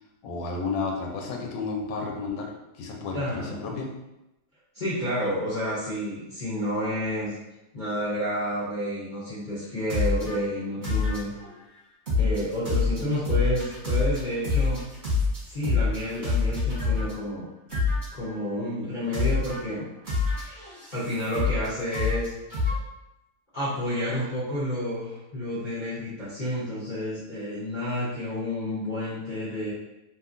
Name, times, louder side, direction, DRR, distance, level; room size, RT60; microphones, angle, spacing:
voice 1, 0.2-3.9, left 4 dB, 90° left, 1 dB, 1.2 m, -32 dB
voice 2, 3.1-3.7 4.7-7.4 7.7-11.3 12.1-14.8 15.5-17.5 18.1-19.9 20.9-22.3 23.5-29.7, equal, 55° left, -10 dB, 0.5 m, -30 dB
sound 1, 9.9-10.4 10.8-11.5 12.1-17.1 17.7-18.3 19.1-19.6 20.1-21.7 21.9-22.8, left 4 dB, 40° right, 0.9 m, -26 dB
2.8 x 2.4 x 2.5 m, 0.94 s
omnidirectional pair, 1.8 m